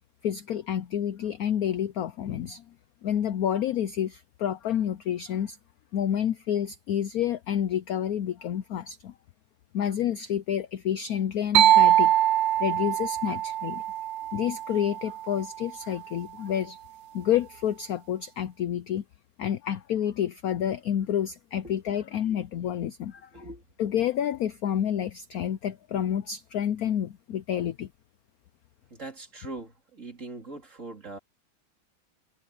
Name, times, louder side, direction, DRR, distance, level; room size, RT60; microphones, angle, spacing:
voice 1, 0.2-2.6 3.0-5.6 5.9-9.1 9.7-12.3 12.6-13.8 14.3-16.8 17.1-19.0 19.4-23.4 23.8-27.9, left 10 dB, 75° left, 0.8 m, -29 dB
sound 1, 11.5-15.2, right 13 dB, 75° right, 1.3 m, -23 dB
voice 2, 23.3-23.6 28.9-31.2, right 2 dB, 35° right, 3.6 m, -41 dB
omnidirectional pair, 2.2 m